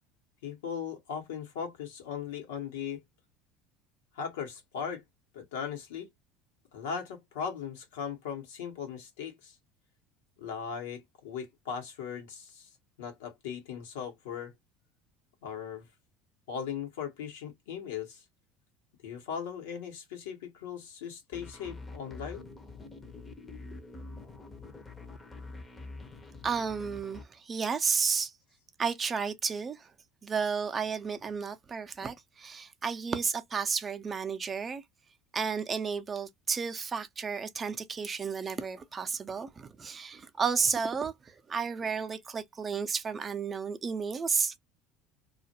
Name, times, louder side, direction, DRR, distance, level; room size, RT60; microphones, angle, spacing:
voice 1, 0.4-3.0 4.1-5.0 5.3-6.1 6.7-9.6 10.4-12.7 13.0-14.5 15.4-15.9 16.5-18.2 19.0-22.5, left 7 dB, 85° left, 1.0 m, -38 dB
sound 1, 21.3-27.2, left 3 dB, 20° left, 0.6 m, -46 dB
voice 2, 26.4-28.3 28.8-29.9 30.2-34.8 35.3-44.6, right 5 dB, 30° right, 0.5 m, -32 dB
2.3 x 2.1 x 2.7 m
hypercardioid pair, 85°, 0 cm